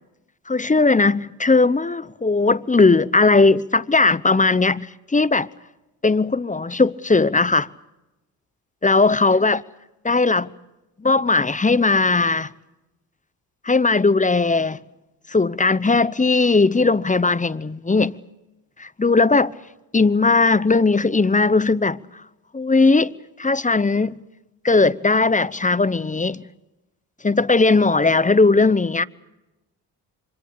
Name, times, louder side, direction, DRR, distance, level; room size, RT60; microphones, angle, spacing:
voice 1, 0.5-4.8 5.1-5.5 6.0-7.7 8.8-9.6 10.0-10.5 11.0-12.5 13.6-14.8 15.3-18.1 18.8-19.5 19.9-22.0 22.5-23.1 23.4-24.2 24.6-26.4 27.2-29.0, left 3 dB, 15° left, 0.8 m, -18 dB
26.0 x 24.0 x 6.6 m
hypercardioid pair, 45°, 45 cm